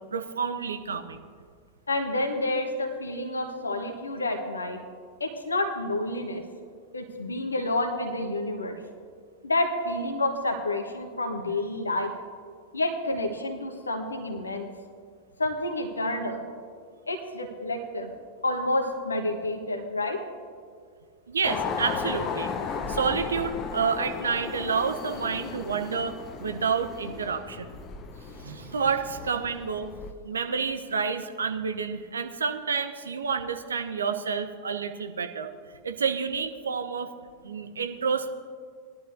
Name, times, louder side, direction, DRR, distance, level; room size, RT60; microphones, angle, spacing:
voice 1, 0.1-1.2 21.3-22.5 22.9-26.1 26.4-27.7 28.4-29.9 30.2-35.5 35.8-37.1 37.4-38.3, right 5 dB, 70° right, 7 dB, 0.8 m, -29 dB
voice 2, 1.9-4.8 5.2-6.4 6.9-8.8 9.4-12.1 12.7-14.7 15.4-16.4 17.1-18.1 18.4-20.2, left 2 dB, 75° left, 4 dB, 1.2 m, -29 dB
sound 1, 21.4-30.1, left 6 dB, 30° left, 0.8 m, -35 dB
20.0 x 11.5 x 2.7 m, 2.1 s
figure-of-eight pair, 90°, 0 cm